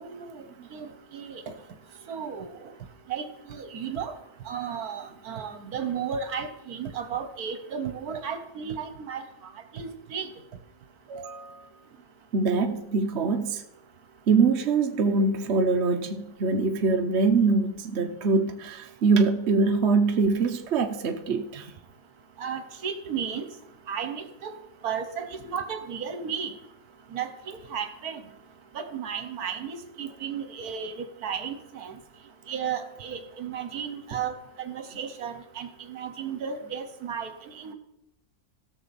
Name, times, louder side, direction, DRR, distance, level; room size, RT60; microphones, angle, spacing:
voice 1, 0.0-0.4 0.7-1.5 2.1-2.5 3.1-4.1 4.5-9.2 9.7-10.3 22.4-23.5 23.9-24.5 24.8-26.5 27.1-28.2 28.7-31.9 32.5-37.7, right 7 dB, 70° right, 9 dB, 1.4 m, -34 dB
voice 2, 11.1-11.6 12.3-13.6 14.3-21.7, right 4 dB, 50° right, 5 dB, 1.0 m, -24 dB
16.5 x 6.5 x 4.2 m, 0.88 s
omnidirectional pair, 1.7 m